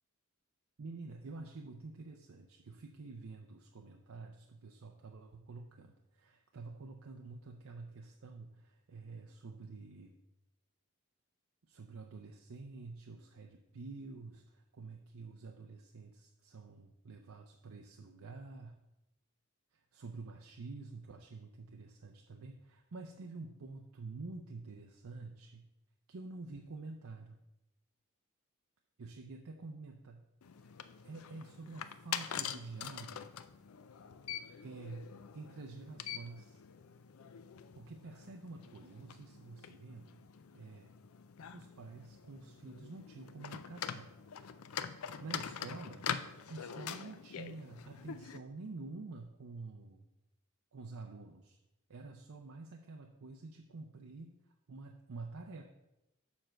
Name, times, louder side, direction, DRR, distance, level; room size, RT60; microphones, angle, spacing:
voice 1, 0.8-10.2 11.7-18.8 19.7-25.7 26.1-27.4 29.0-30.2 30.6-30.8 31.0-33.3 34.6-36.6 37.7-40.2 40.5-40.9 41.5-44.1 45.2-46.1 46.5-50.0 50.7-51.6 51.9-54.4 54.7-55.6, right 3 dB, 70° right, 3 dB, 0.6 m, -48 dB
sound 1, 30.4-48.4, left 8 dB, 75° left, 0.4 m, -45 dB
7.2 x 4.5 x 6.4 m, 0.90 s
head